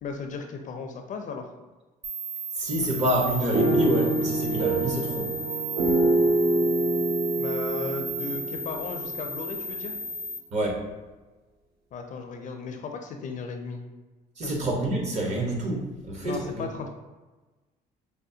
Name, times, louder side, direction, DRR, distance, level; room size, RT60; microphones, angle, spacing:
voice 1, 0.0-1.5 7.4-9.9 11.9-13.9 14.4-14.6 16.2-16.9, left 4 dB, 50° left, 4 dB, 0.4 m, -36 dB
sound 1, 2.0-10.4, right 2 dB, 10° right, 0.4 m, -35 dB
voice 2, 2.6-5.3 10.5-10.8 14.4-16.7, right 1 dB, 40° right, -1 dB, 1.0 m, -27 dB
sound 2, 3.5-9.6, right 2 dB, 70° right, 0.7 m, -26 dB
4.9 x 2.1 x 2.7 m, 1.2 s
cardioid pair, 110°, 17 cm